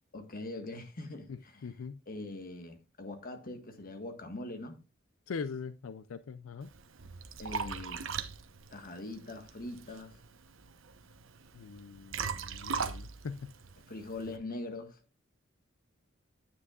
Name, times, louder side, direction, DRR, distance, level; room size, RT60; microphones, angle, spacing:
voice 1, 0.1-4.8 7.4-8.0 8.7-10.2 13.9-15.0, left 2 dB, 45° left, 1.5 m, -42 dB
voice 2, 1.6-2.0 5.3-6.7 11.5-13.5, left 5 dB, 75° left, 0.4 m, -41 dB
Liquid, 6.6-14.4, right 5 dB, 70° right, 0.9 m, -40 dB
9.6 x 9.5 x 2.4 m
head